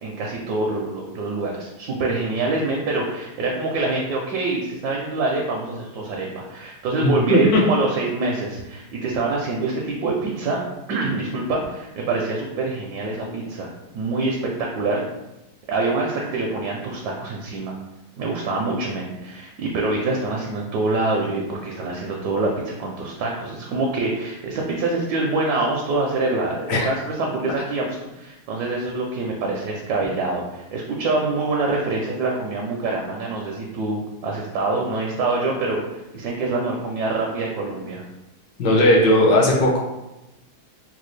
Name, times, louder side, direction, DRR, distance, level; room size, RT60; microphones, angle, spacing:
voice 1, 0.0-10.6 10.9-15.0 15.7-17.7 18.2-38.0, right 3 dB, 75° right, -1 dB, 1.0 m, -25 dB
voice 2, 7.0-7.6 26.7-26.9 38.6-39.8, left 1 dB, 65° left, -2 dB, 1.2 m, -17 dB
4.0 x 2.3 x 3.1 m, 0.97 s
omnidirectional pair, 2.2 m